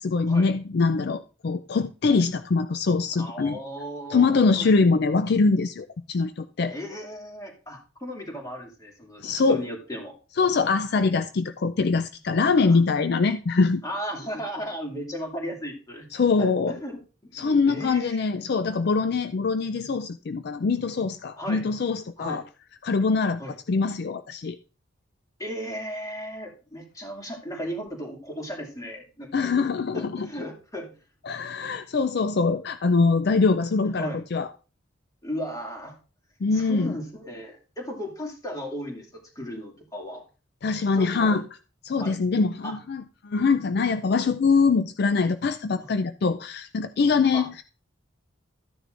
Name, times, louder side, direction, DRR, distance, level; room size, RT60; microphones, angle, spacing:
voice 1, 0.0-3.6 4.1-6.7 9.2-9.6 10.4-13.8 16.1-16.7 17.4-22.4 22.8-23.4 23.7-24.6 29.3-30.3 31.3-34.5 36.4-36.9 40.6-41.4 41.9-47.6, left 4 dB, 55° left, 0.4 m, -23 dB
voice 2, 3.2-4.7 6.7-10.1 12.5-12.8 13.8-16.1 16.4-18.2 21.4-21.6 22.2-22.4 23.4-23.5 25.4-29.5 29.9-30.9 34.0-34.2 35.2-36.0 36.5-40.2 41.0-41.4 42.0-42.2 42.6-42.8 45.8-45.9 47.3-47.5, equal, 20° left, 2.4 m, -36 dB
13.5 x 10.0 x 2.5 m
head